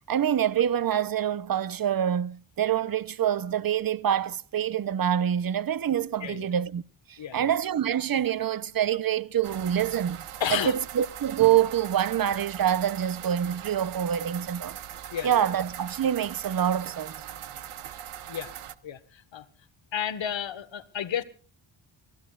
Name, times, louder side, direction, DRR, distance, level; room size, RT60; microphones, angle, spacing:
voice 1, 0.1-6.8 7.1-10.2 10.5-14.8 15.2-17.2, right 10 dB, 45° right, 0.8 m, -26 dB
voice 2, 7.2-7.5 10.4-10.7 15.1-15.5 18.3-18.5 18.8-19.5 19.9-21.2, left 9 dB, 65° left, 1.6 m, -32 dB
sound 1, 9.4-18.8, right 10 dB, 90° right, 1.2 m, -41 dB
30.0 x 16.0 x 2.5 m
cardioid pair, 90°, 49 cm